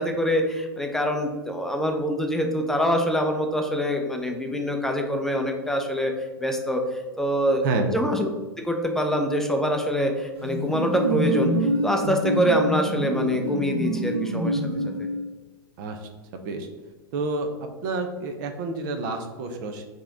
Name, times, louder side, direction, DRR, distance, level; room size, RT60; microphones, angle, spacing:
voice 1, 0.0-6.1 6.4-7.6 7.9-8.3 8.6-14.6 15.0-15.1, equal, 5° left, 3 dB, 0.5 m, -25 dB
voice 2, 7.6-7.9 15.8-16.0 16.3-16.7 17.1-17.5 17.8-19.9, right 3 dB, 55° right, 5 dB, 0.7 m, -28 dB
sound 1, 10.4-15.3, right 1 dB, 85° right, 1.2 m, -26 dB
4.8 x 2.9 x 3.6 m, 1.3 s
hypercardioid pair, 115°, 13 cm